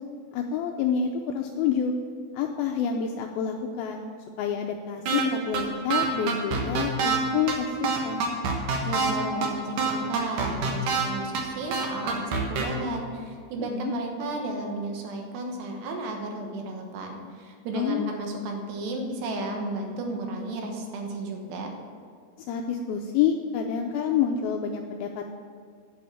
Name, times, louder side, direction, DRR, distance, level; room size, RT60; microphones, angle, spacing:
voice 1, 0.3-1.9 2.3-4.1 4.4-8.3 13.6-13.9 17.7-18.1 22.5-25.3, left 7 dB, 80° left, 3 dB, 2.2 m, -28 dB
sound 1, 5.1-5.2 5.5-5.6 5.9-7.2 7.5-7.6 7.8-9.1 9.4-9.5 9.8-11.0 11.3-11.4 11.7-12.6, right 5 dB, 60° right, 2.5 m, -25 dB
voice 2, 8.8-21.7, right 2 dB, 80° right, 2 dB, 3.4 m, -33 dB
8.4 x 7.8 x 8.7 m, 2.2 s
omnidirectional pair, 4.8 m